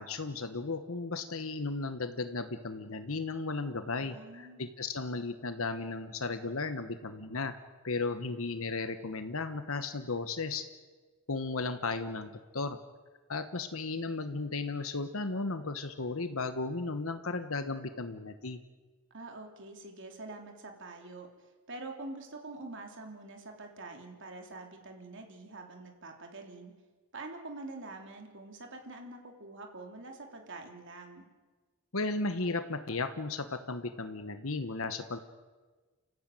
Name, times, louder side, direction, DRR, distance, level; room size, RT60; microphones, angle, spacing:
voice 1, 0.0-7.5 7.8-10.6 11.3-12.8 13.3-18.6 31.9-35.2, left 3 dB, 70° left, 9 dB, 1.2 m, -35 dB
voice 2, 4.0-4.6 19.1-21.3 21.7-26.7 27.1-31.3, right 2 dB, 55° right, 3 dB, 3.2 m, -45 dB
30.0 x 14.5 x 9.2 m, 1.3 s
head